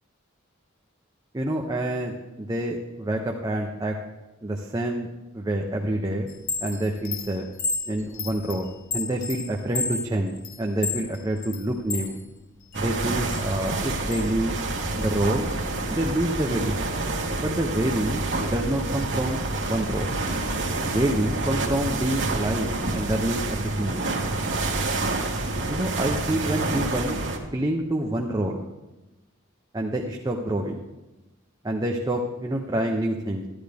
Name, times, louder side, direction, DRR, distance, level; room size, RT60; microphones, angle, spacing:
voice 1, 1.3-4.0 4.4-6.3 6.6-7.5 7.9-12.2 12.7-14.6 15.0-15.5 15.9-16.8 17.4-20.1 20.8-24.2 25.7-27.2 27.5-28.7 29.7-30.8 31.6-33.5, right 1 dB, 20° right, 1 dB, 0.7 m, -27 dB
Chime, 6.3-12.1 12.6-14.3, left 4 dB, 70° left, 1.3 m, -32 dB
sound 1, 12.7-27.4, right 2 dB, 60° right, 1.5 m, -28 dB
11.5 x 11.5 x 3.4 m, 1.1 s
head